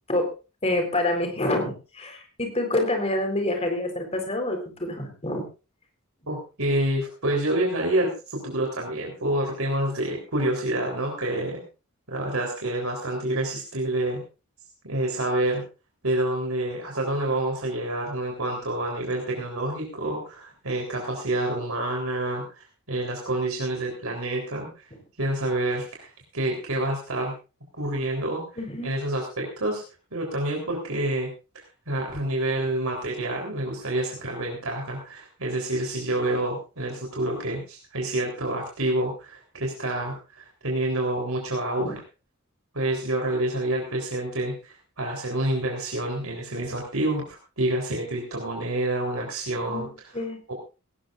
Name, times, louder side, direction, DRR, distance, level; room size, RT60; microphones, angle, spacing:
voice 1, 0.6-5.4 28.6-28.9 41.8-42.0 49.7-50.4, left 1 dB, 30° left, 4 dB, 4.1 m, -27 dB
voice 2, 6.3-11.6 12.1-14.2 14.8-15.6 16.0-24.9 25.2-27.3 27.8-28.5 28.8-29.8 30.1-31.3 31.9-41.9 42.7-49.9 50.5-50.6, right 1 dB, 75° right, 0 dB, 3.8 m, -28 dB
18.5 x 18.0 x 2.5 m, 0.32 s
head